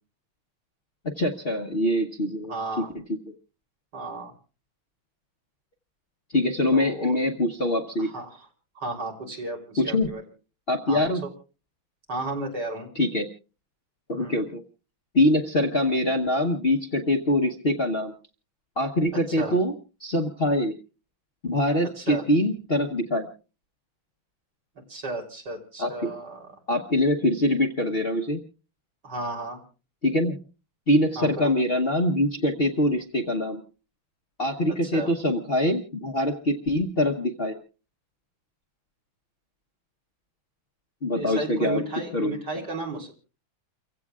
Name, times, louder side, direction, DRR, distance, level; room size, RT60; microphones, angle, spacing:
voice 1, 1.2-2.5 6.3-8.1 9.8-10.1 10.7-11.2 12.9-13.3 14.1-14.6 15.1-18.1 18.8-19.7 20.0-20.7 21.4-23.3 25.8-26.1 26.7-28.4 30.0-30.4 30.9-33.6 34.4-37.6 41.0-41.8 42.1-42.3, left 1 dB, 40° left, 3 dB, 1.0 m, -24 dB
voice 2, 2.5-2.9 3.9-4.3 6.7-7.2 8.0-8.5 8.8-10.2 10.9-11.0 12.1-12.9 14.2-14.4 19.3-19.5 22.0-22.2 24.9-26.4 29.0-29.6 31.2-31.5 34.8-35.1 41.1-43.1, right 2 dB, 55° right, 1 dB, 4.1 m, -33 dB
29.5 x 16.0 x 2.4 m, 0.34 s
omnidirectional pair, 2.2 m